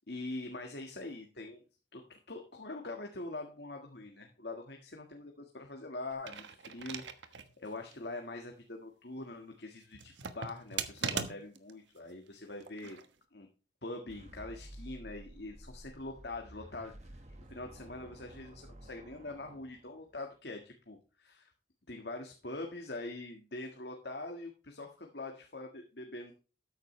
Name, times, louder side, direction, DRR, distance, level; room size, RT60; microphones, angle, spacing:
voice 1, 0.1-1.6 1.9-13.0 13.3-13.5 13.8-17.2 17.5-21.5 21.9-26.4, left 2 dB, 65° left, 3 dB, 1.6 m, -44 dB
sound 1, 6.1-7.5 7.9-8.0 9.9-11.7 12.6-13.1, right 6 dB, 85° right, 1.2 m, -39 dB
sound 2, 14.1-20.3, right 1 dB, 40° right, 1.4 m, -52 dB
13.0 x 9.4 x 3.2 m, 0.34 s
head